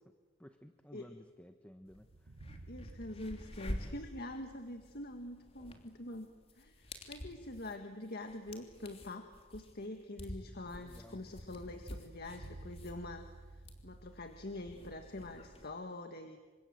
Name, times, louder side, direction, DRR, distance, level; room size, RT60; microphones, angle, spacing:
voice 1, 0.4-2.3 10.7-11.2, equal, 5° left, 7 dB, 1.0 m, -55 dB
sound 1, 1.8-6.5 6.8-6.9 11.9-15.8, right 2 dB, 75° right, 1.0 m, -55 dB
sound 2, 1.9-2.0 2.3-15.7, equal, 30° left, 3.1 m, -48 dB
voice 2, 2.7-6.3 6.5-13.2 13.5-16.4, left 1 dB, 55° left, 5 dB, 1.8 m, -45 dB
29.5 x 25.5 x 7.7 m, 1.4 s
head